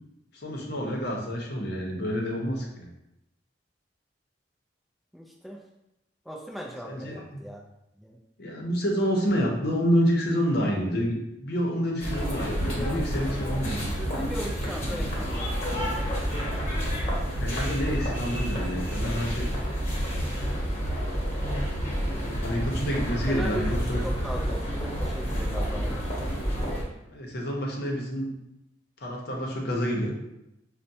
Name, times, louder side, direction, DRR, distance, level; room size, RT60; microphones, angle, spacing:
voice 1, 0.3-2.9 6.8-7.4 8.4-14.1 17.2-19.5 22.2-24.0 27.1-28.3 29.0-30.1, equal, 60° left, 0 dB, 0.7 m, -28 dB
voice 2, 5.1-5.6 6.3-7.6 8.0-8.2 14.1-15.5 23.3-26.1, equal, ahead, -2 dB, 0.3 m, -38 dB
sound 1, 12.0-26.8, equal, 40° left, 1.0 m, -29 dB
5.5 x 2.2 x 2.6 m, 0.88 s
head